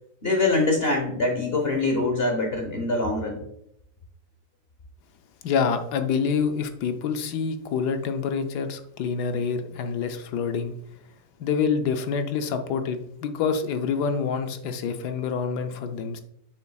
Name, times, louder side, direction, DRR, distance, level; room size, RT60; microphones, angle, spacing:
voice 1, 0.2-3.4, left 2 dB, 40° left, 2 dB, 1.0 m, -24 dB
voice 2, 5.4-10.7 11.4-16.2, left 6 dB, 75° left, 7 dB, 1.2 m, -27 dB
6.7 x 6.3 x 2.3 m, 0.74 s
omnidirectional pair, 1.9 m